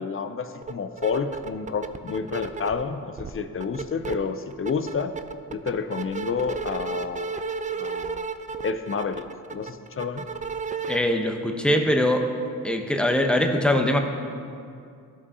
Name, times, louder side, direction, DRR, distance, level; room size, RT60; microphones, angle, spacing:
voice 1, 0.0-5.1 5.5-7.3 7.8-8.3 8.6-9.2 9.5-10.3, left 5 dB, 40° left, 10 dB, 0.5 m, -29 dB
sound 1, 0.6-0.7 1.0-2.8 3.2-4.1 4.5-11.0, right 5 dB, 25° right, 0.3 m, -32 dB
voice 2, 10.9-12.3 12.6-14.0, left 1 dB, 5° left, 4 dB, 0.8 m, -22 dB
12.5 x 5.4 x 2.7 m, 2.4 s
cardioid pair, 55°, 35 cm